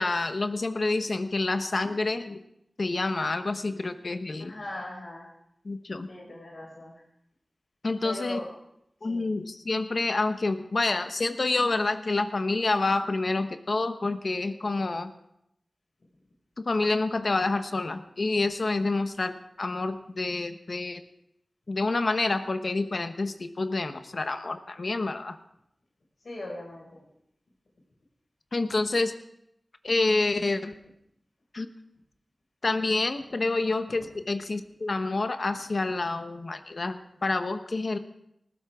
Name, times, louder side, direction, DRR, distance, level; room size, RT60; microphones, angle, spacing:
voice 1, 0.0-2.4 2.8-4.5 5.6-6.1 7.8-8.4 9.0-15.1 16.6-21.0 21.7-25.4 28.5-29.1 29.8-30.7 31.5-31.7 32.6-38.0, left 3 dB, 65° left, 8 dB, 1.0 m, -28 dB
voice 2, 4.4-5.3 6.1-7.0 8.0-8.5 9.0-9.3 26.2-27.0, left 1 dB, 80° left, -1 dB, 5.9 m, -39 dB
19.5 x 15.0 x 3.6 m, 0.77 s
wide cardioid pair, 65°, 0 cm